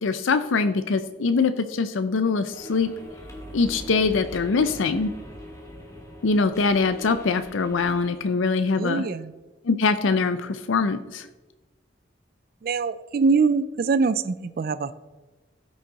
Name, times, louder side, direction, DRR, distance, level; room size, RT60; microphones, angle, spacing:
voice 1, 0.0-2.9 3.5-5.1 6.2-9.1 9.6-11.3, left 4 dB, 85° left, 10 dB, 0.5 m, -23 dB
sound 1, 2.5-8.2, equal, 15° left, 1.6 m, -42 dB
voice 2, 8.8-9.3 12.6-14.9, right 4 dB, 50° right, 14 dB, 0.3 m, -23 dB
14.5 x 6.3 x 4.0 m, 1.2 s
head